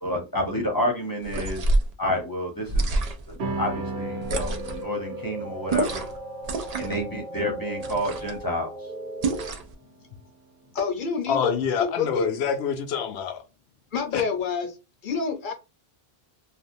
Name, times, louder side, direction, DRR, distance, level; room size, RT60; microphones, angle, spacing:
voice 1, 0.0-1.6 2.0-2.9 3.3-6.0 6.8-8.7, equal, 25° left, 0.8 m, -29 dB
sound 1, 1.2-1.9 2.7-3.4 4.2-4.8 5.7-6.2 6.4-7.0 7.8-8.4 9.2-9.7, right 2 dB, 55° right, 0.5 m, -27 dB
sound 2, 3.4-10.1, right 3 dB, 85° right, 0.9 m, -38 dB
sound 3, 3.8-9.5, right 1 dB, 20° right, 1.0 m, -37 dB
voice 2, 10.7-11.4 12.0-12.3 13.9-14.7 15.0-15.5, left 6 dB, 55° left, 0.8 m, -27 dB
voice 3, 11.3-13.4 14.1-14.2, left 6 dB, 85° left, 0.8 m, -26 dB
3.4 x 2.2 x 2.6 m
omnidirectional pair, 1.1 m